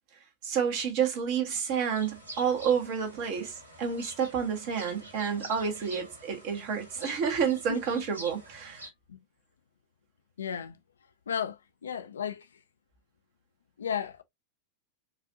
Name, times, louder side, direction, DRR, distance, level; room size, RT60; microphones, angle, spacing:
voice 1, 0.4-8.8, right 7 dB, 45° right, 1.3 m, -29 dB
sound 1, 1.9-8.9, right 1 dB, 80° right, 1.5 m, -47 dB
voice 2, 10.4-10.8 11.3-12.5 13.8-14.2, left 8 dB, 70° left, 0.5 m, -34 dB
4.8 x 2.5 x 2.7 m
figure-of-eight pair, 90°, 0 cm